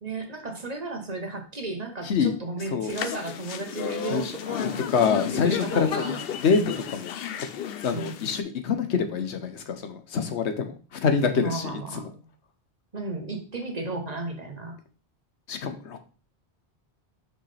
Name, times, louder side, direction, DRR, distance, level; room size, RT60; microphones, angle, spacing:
voice 1, 0.0-4.9 5.1-6.2 6.6-6.8 7.9-8.2 11.3-12.2 12.9-14.8, right 3 dB, 40° right, 4 dB, 1.2 m, -34 dB
sound 1, 2.9-8.4, left 8 dB, 65° left, 0.8 m, -33 dB
voice 2, 4.6-6.0 6.4-7.5 7.8-12.1 15.5-16.0, left 6 dB, 80° left, 7 dB, 1.1 m, -26 dB
6.2 x 5.1 x 3.3 m, 0.36 s
omnidirectional pair, 1.1 m